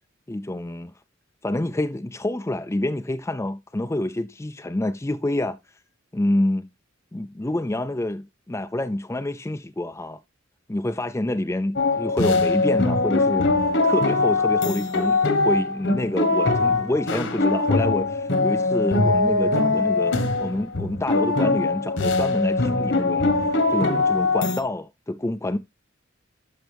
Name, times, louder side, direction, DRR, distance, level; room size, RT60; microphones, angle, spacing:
voice 1, 0.3-0.9 1.4-5.6 6.1-6.6 7.1-10.2 10.7-25.6, left 1 dB, 15° left, 0.4 m, -27 dB
sound 1, 11.8-24.6, left 3 dB, 60° left, 1.4 m, -22 dB
12.5 x 5.7 x 3.4 m
head